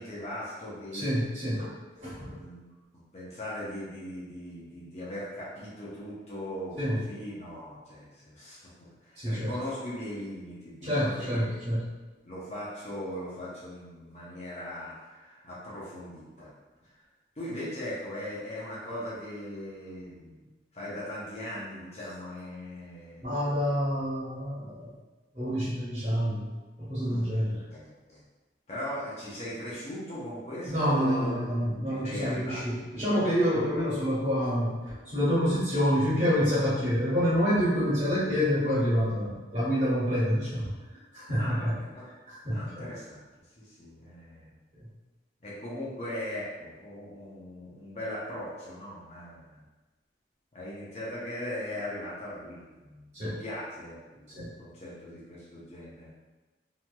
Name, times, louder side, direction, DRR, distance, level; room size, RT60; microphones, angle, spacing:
voice 1, 0.0-1.1 2.1-2.6 3.1-11.6 12.2-16.5 17.4-20.4 20.7-23.2 27.1-27.3 27.7-28.2 28.7-32.6 41.4-42.1 42.5-43.2 43.6-44.5 45.4-49.6 50.5-56.1, left 1 dB, 35° left, -8 dB, 0.6 m, -39 dB
voice 2, 0.9-1.7 2.0-2.4 6.8-7.0 9.2-9.6 10.8-11.9 23.2-24.9 25.3-26.5 26.8-27.6 30.7-40.7 41.1-41.7 42.3-42.9 53.1-53.4 54.3-54.5, equal, 40° right, -10 dB, 1.4 m, -27 dB
2.9 x 2.8 x 2.2 m, 1.2 s
head